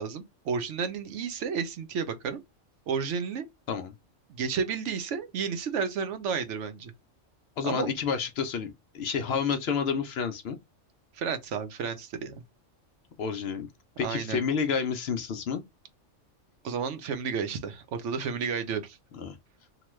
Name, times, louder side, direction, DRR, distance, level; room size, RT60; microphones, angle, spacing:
voice 1, 0.0-2.4 2.9-3.5 4.3-6.9 7.6-7.9 11.2-12.3 14.0-14.4 16.6-19.0, right 6 dB, 70° right, 1.0 m, -31 dB
voice 2, 7.6-10.6 13.2-13.7 14.0-15.6 19.1-19.4, left 6 dB, 65° left, 0.7 m, -30 dB
3.0 x 2.2 x 3.0 m
omnidirectional pair, 1.3 m